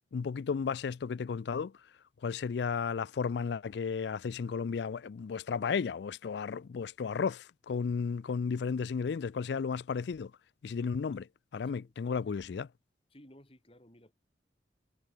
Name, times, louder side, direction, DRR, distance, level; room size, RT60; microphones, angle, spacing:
voice 1, 0.1-1.7 2.2-10.3 10.6-11.3 11.5-12.7, left 5 dB, 70° left, 0.4 m, -33 dB
voice 2, 11.6-12.4 13.1-14.1, equal, 30° left, 5.2 m, -58 dB
head